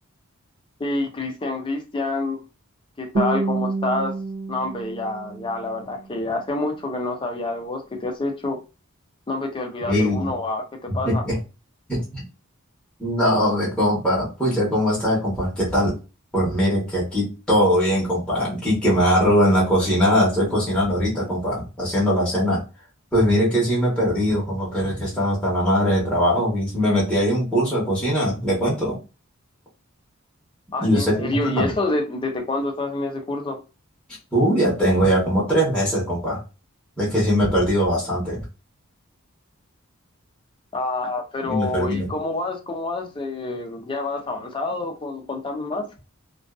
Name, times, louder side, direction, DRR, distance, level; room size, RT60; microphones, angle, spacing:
voice 1, 0.8-2.4 3.0-4.1 4.5-8.6 9.3-11.2 30.7-33.6 40.7-45.9, left 2 dB, 25° left, 0.5 m, -27 dB
Guitar, 3.1-6.2, right 3 dB, 65° right, 0.6 m, -28 dB
voice 2, 9.9-10.3 10.9-11.4 11.9-12.2 13.0-15.9 16.3-22.6 23.1-29.0 30.8-31.7 34.3-36.4 37.0-38.4 41.4-42.1, equal, 5° left, 0.9 m, -21 dB
2.4 x 2.3 x 2.3 m
head